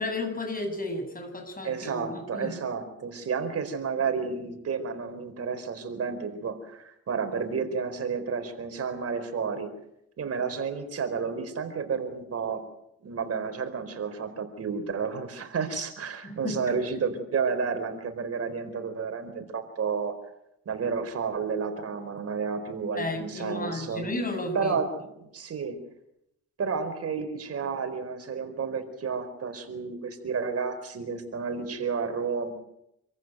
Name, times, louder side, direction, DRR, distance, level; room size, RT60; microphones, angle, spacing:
voice 1, 0.0-2.6 16.2-17.2 22.9-24.8, left 2 dB, 30° left, 6 dB, 7.4 m, -33 dB
voice 2, 1.6-9.7 10.2-12.6 13.0-20.1 20.7-24.1 24.5-25.8 26.6-32.5, right 5 dB, 50° right, 7 dB, 4.6 m, -31 dB
27.5 x 15.0 x 9.3 m, 0.82 s
cardioid pair, 90°, 30 cm